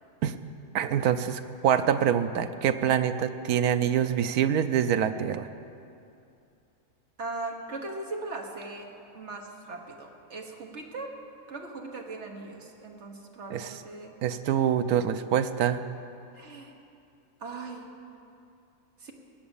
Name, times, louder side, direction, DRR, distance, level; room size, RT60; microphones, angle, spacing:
voice 1, 0.7-5.5 13.5-13.8 14.2-15.8, right 9 dB, 80° right, 10 dB, 1.1 m, -25 dB
voice 2, 7.2-8.9 9.1-11.1 11.5-14.1 16.3-16.7 17.4-17.9 19.0-19.1, right 3 dB, 50° right, 2 dB, 1.7 m, -39 dB
19.0 x 8.7 x 7.1 m, 2.6 s
omnidirectional pair, 1.6 m